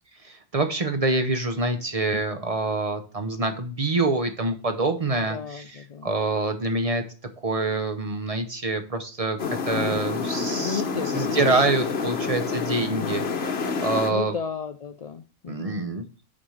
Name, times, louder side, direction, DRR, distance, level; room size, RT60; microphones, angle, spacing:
voice 1, 0.2-5.6 6.0-7.0 7.4-10.8 11.1-13.5 13.8-14.3 15.5-16.0, right 2 dB, 35° right, 7 dB, 0.7 m, -26 dB
voice 2, 5.1-6.1 9.7-10.1 10.6-11.6 12.8-13.4 14.1-15.9, left 7 dB, 70° left, 9 dB, 0.3 m, -35 dB
sound 1, 9.4-14.1, left 5 dB, 55° left, 1.1 m, -28 dB
6.1 x 4.4 x 6.3 m, 0.36 s
omnidirectional pair, 1.3 m